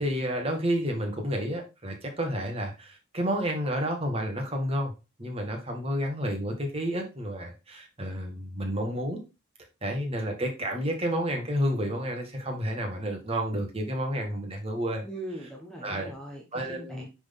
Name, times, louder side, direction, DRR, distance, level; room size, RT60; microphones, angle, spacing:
voice 1, 0.0-4.9 5.2-9.2 9.8-15.0 15.8-16.1 16.5-17.1, equal, 25° right, 2 dB, 1.9 m, -30 dB
voice 2, 15.0-17.1, right 1 dB, 5° left, 0 dB, 1.2 m, -40 dB
9.5 x 4.1 x 3.8 m, 0.28 s
head